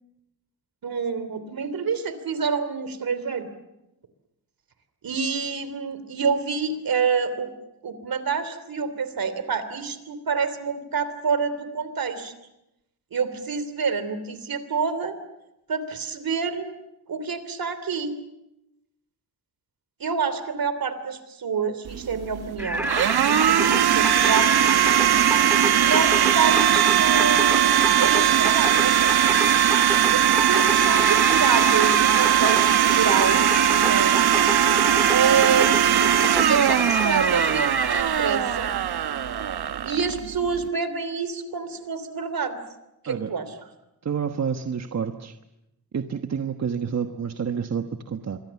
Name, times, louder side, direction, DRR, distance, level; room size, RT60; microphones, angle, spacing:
voice 1, 0.8-3.5 5.0-7.5 7.8-12.3 13.1-15.2 15.7-16.7 17.1-18.2 20.0-22.9 23.2-24.7 25.7-29.3 30.1-33.5 33.8-34.2 35.1-38.8 39.8-42.6 43.0-43.5, right 5 dB, 65° right, 12 dB, 3.1 m, -27 dB
Domestic sounds home sounds, 21.9-40.7, right 11 dB, 80° right, 1.1 m, -20 dB
Singing, 22.6-38.0, right 1 dB, 5° right, 1.6 m, -29 dB
voice 2, 44.0-45.3 45.9-48.4, right 6 dB, 45° right, 6 dB, 1.2 m, -29 dB
26.5 x 23.5 x 7.1 m, 0.91 s
cardioid pair, 95°, 38 cm